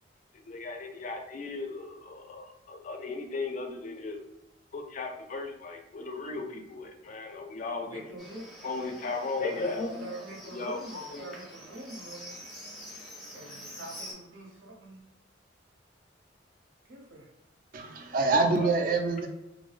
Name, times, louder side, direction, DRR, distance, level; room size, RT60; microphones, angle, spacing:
voice 1, 0.5-4.2 4.7-8.0 8.6-9.9 10.5-11.2 18.3-18.7, left 3 dB, 40° left, 3 dB, 0.3 m, -36 dB
voice 2, 7.8-8.6 9.5-12.4 13.3-15.0 16.8-17.3, right 1 dB, 85° right, 0 dB, 0.7 m, -44 dB
Livestock farm animals working animals, 8.2-14.1, equal, ahead, 0.6 m, -46 dB
voice 3, 17.7-19.3, right 3 dB, 45° right, 4 dB, 0.3 m, -25 dB
2.5 x 2.1 x 2.4 m, 0.91 s
head